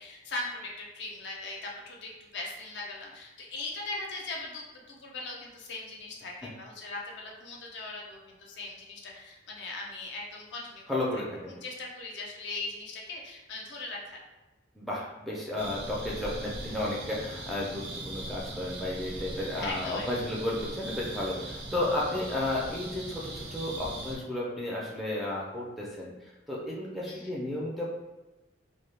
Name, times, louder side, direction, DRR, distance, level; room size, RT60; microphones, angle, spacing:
voice 1, 0.0-10.8 11.6-14.2 19.6-20.1 27.1-27.3, left 2 dB, 70° left, -1 dB, 0.5 m, -39 dB
voice 2, 10.9-11.5 14.8-27.9, left 1 dB, ahead, -5 dB, 0.4 m, -33 dB
sound 1, 15.6-24.1, right 1 dB, 60° right, 0.6 m, -40 dB
2.1 x 2.1 x 3.2 m, 1.1 s
head